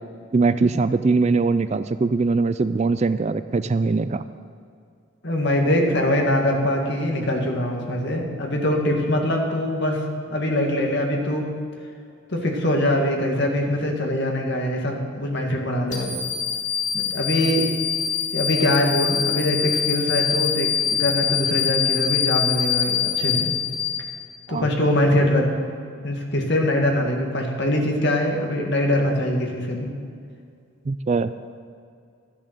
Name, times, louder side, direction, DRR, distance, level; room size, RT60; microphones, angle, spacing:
voice 1, 0.3-4.2 24.5-24.7 30.9-31.3, right 4 dB, 30° right, 13 dB, 0.3 m, -21 dB
voice 2, 5.2-10.0 10.3-11.5 12.3-16.2 16.9-17.7 18.3-23.6 24.5-25.5 26.0-29.9, left 1 dB, 55° left, 1 dB, 1.9 m, -23 dB
sound 1, 15.9-24.4, left 8 dB, 35° left, 2.2 m, -24 dB
13.0 x 10.5 x 6.7 m, 2.3 s
head